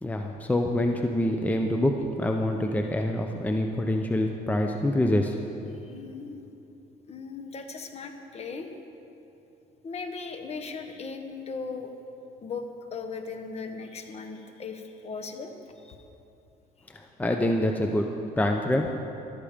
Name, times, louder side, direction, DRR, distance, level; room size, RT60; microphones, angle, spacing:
voice 1, 0.0-5.7 16.9-18.9, left 1 dB, 10° left, 3 dB, 0.7 m, -26 dB
voice 2, 5.8-6.5 7.1-8.7 9.8-11.9 12.4-16.0, left 4 dB, 40° left, 6 dB, 1.3 m, -38 dB
14.0 x 12.0 x 5.1 m, 2.9 s
cardioid pair, 110°, 17 cm